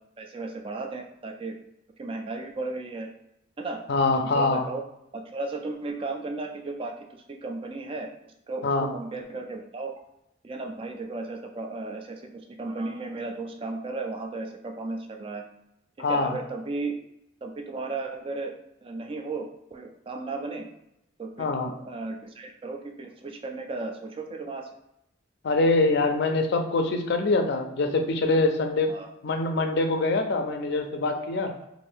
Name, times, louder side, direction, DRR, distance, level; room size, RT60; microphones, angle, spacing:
voice 1, 0.2-1.5 2.0-3.1 3.6-3.8 4.1-4.8 5.1-9.9 10.4-15.4 16.1-16.9 17.4-18.5 18.8-20.6 21.2-24.7 28.9-29.1, right 3 dB, 25° right, 4 dB, 0.3 m, -35 dB
voice 2, 3.9-4.6 8.6-8.9 16.0-16.4 21.4-21.7 25.4-28.9 29.2-31.5, left 3 dB, 55° left, 5 dB, 0.4 m, -24 dB
2.6 x 2.6 x 3.3 m, 0.81 s
head